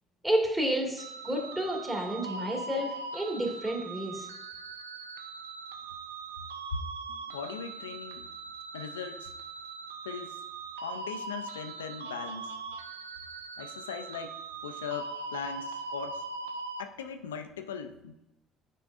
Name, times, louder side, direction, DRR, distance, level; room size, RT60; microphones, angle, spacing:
voice 1, 0.2-4.3, right 1 dB, 20° right, 0 dB, 1.9 m, -30 dB
sound 1, 1.0-16.8, right 4 dB, 85° right, 0.3 m, -41 dB
voice 2, 7.1-8.3 8.7-9.4 10.0-10.5 10.8-12.5 13.6-16.2 16.8-18.2, left 6 dB, 85° left, 7 dB, 0.3 m, -39 dB
9.0 x 4.2 x 2.5 m, 0.91 s
hypercardioid pair, 55°, 0 cm